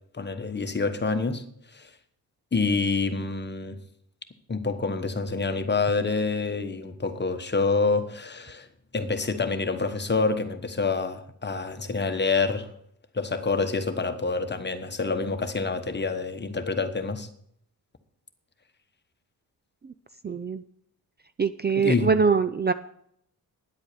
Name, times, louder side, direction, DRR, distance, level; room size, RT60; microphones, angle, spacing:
voice 1, 0.1-1.4 1.7-1.9 2.5-3.8 4.5-8.7 8.9-12.7 13.1-17.3 21.8-22.1, left 4 dB, 30° left, 1.2 m, -27 dB
voice 2, 20.2-20.6 21.4-22.7, right 5 dB, 30° right, 0.4 m, -23 dB
10.5 x 8.1 x 6.8 m
cardioid pair, 100°, 36 cm